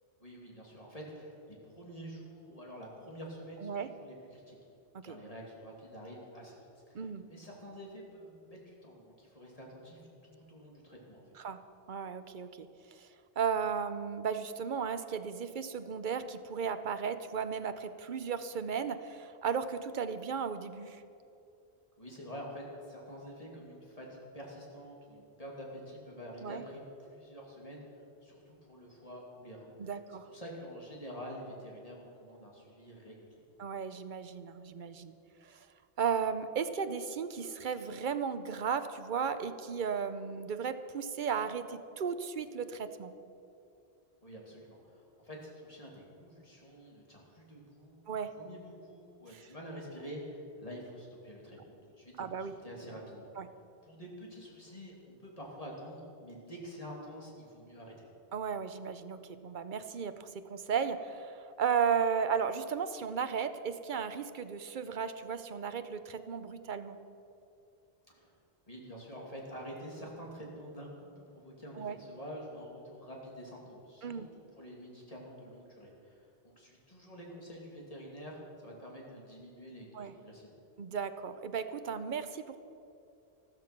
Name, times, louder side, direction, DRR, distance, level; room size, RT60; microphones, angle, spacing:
voice 1, 0.2-3.7 4.0-4.6 5.0-6.6 6.9-11.3 22.0-30.0 30.3-33.3 44.2-48.0 48.3-53.6 53.8-58.1 68.1-68.3 68.7-80.6, equal, 35° left, -2 dB, 2.8 m, -48 dB
voice 2, 6.9-7.3 11.4-11.6 11.9-13.1 13.4-21.0 26.4-26.6 29.8-30.3 33.6-35.1 35.5-35.7 36.0-43.1 48.1-48.4 49.3-49.4 52.2-52.5 53.4-53.5 58.3-67.0 71.8-71.9 74.0-74.3 79.9-80.1 80.8-82.6, right 6 dB, 50° right, 11 dB, 0.8 m, -35 dB
13.5 x 13.5 x 6.0 m, 2.7 s
omnidirectional pair, 1.1 m